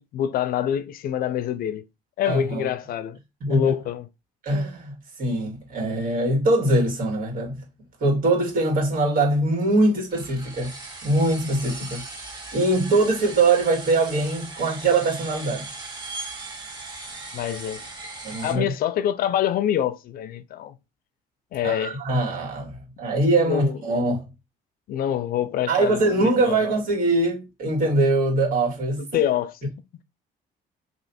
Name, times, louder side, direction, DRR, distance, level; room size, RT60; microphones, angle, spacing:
voice 1, 0.0-1.9 2.2-3.2 3.5-4.1 17.3-17.8 18.4-20.7 21.5-22.0 23.4-23.8 24.9-26.6 29.0-29.7, left 10 dB, 60° left, 0.4 m, -26 dB
voice 2, 2.2-2.7 3.4-3.7 4.4-4.9 5.2-7.6 8.0-10.7 11.0-12.0 12.5-15.7 18.2-18.7 21.6-24.3 25.7-29.0, right 2 dB, 55° right, 2.1 m, -22 dB
sound 1, 10.1-18.5, right 3 dB, 25° right, 1.4 m, -38 dB
3.2 x 2.8 x 4.2 m
cardioid pair, 110°, 17 cm